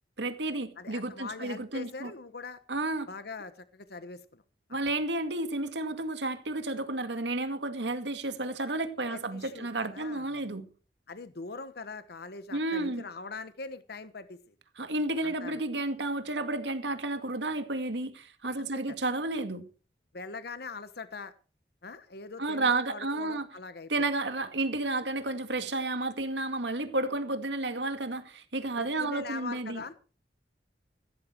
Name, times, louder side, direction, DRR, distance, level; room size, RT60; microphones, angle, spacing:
voice 1, 0.2-2.1 2.7-3.1 4.7-10.7 12.5-13.0 14.8-19.7 22.4-23.5 23.9-29.8, right 2 dB, 85° right, 2.2 m, -31 dB
voice 2, 0.8-2.6 3.1-4.4 9.1-10.5 11.1-14.5 15.2-15.6 18.6-19.0 20.1-21.3 21.8-23.9 28.8-29.9, left 4 dB, 65° left, 1.1 m, -42 dB
16.0 x 13.5 x 4.6 m
head